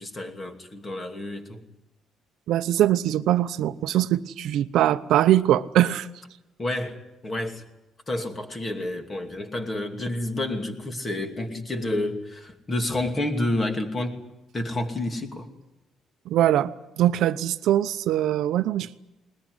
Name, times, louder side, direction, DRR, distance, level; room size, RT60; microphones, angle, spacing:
voice 1, 0.0-1.6 6.6-7.6 8.1-14.2 14.5-15.5, left 1 dB, 20° left, 2.6 m, -29 dB
voice 2, 2.5-6.1 16.3-19.0, right 12 dB, 75° right, 0.8 m, -22 dB
20.5 x 20.5 x 9.7 m
cardioid pair, 160°, 0 cm